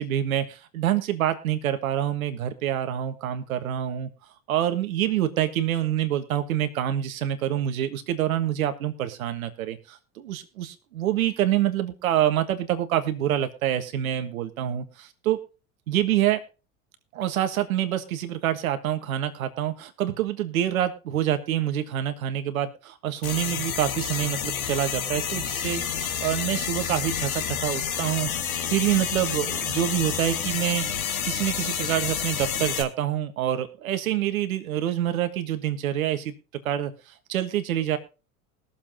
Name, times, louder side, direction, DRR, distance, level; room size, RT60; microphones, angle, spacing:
voice 1, 0.0-4.1 4.5-15.4 15.9-16.4 17.1-28.3 28.7-30.9 31.2-36.3 36.6-36.9 37.3-38.0, right 11 dB, 80° right, 9 dB, 1.5 m, -26 dB
sound 1, 23.2-32.8, left 8 dB, 85° left, 1.7 m, -29 dB
21.0 x 7.2 x 2.9 m, 0.33 s
hypercardioid pair, 80°, 41 cm